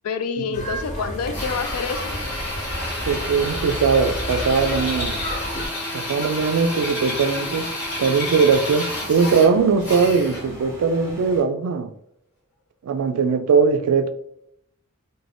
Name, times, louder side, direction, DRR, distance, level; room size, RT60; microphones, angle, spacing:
voice 1, 0.0-2.2, left 5 dB, 90° left, 0.3 m, -27 dB
sound 1, 0.5-5.7, equal, 35° left, 0.6 m, -31 dB
Drill, 1.3-10.6, left 1 dB, 60° left, 1.0 m, -30 dB
voice 2, 3.1-5.2 5.9-11.9 12.8-14.1, right 5 dB, 80° right, 0.3 m, -20 dB
sound 2, 5.2-11.4, right 1 dB, 15° right, 0.8 m, -41 dB
2.5 x 2.1 x 3.3 m
head